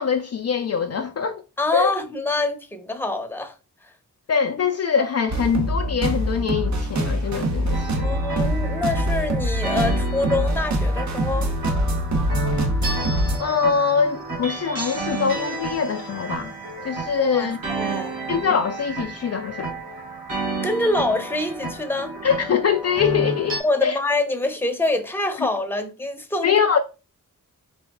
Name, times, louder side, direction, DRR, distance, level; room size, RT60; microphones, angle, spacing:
voice 1, 0.0-1.4 1.7-1.9 4.3-8.1 13.4-16.5 16.8-17.6 18.3-19.7 22.2-24.0 25.4-25.5 26.4-26.8, left 6 dB, 45° left, 0.4 m, -23 dB
voice 2, 1.6-3.5 8.0-11.5 17.2-18.2 20.6-22.1 23.6-26.5, left 2 dB, 5° left, 0.8 m, -25 dB
sound 1, 5.3-13.4, right 1 dB, 55° right, 0.9 m, -24 dB
sound 2, 7.7-23.6, right 3 dB, 80° right, 2.1 m, -31 dB
4.0 x 3.3 x 3.5 m
wide cardioid pair, 90°, 34 cm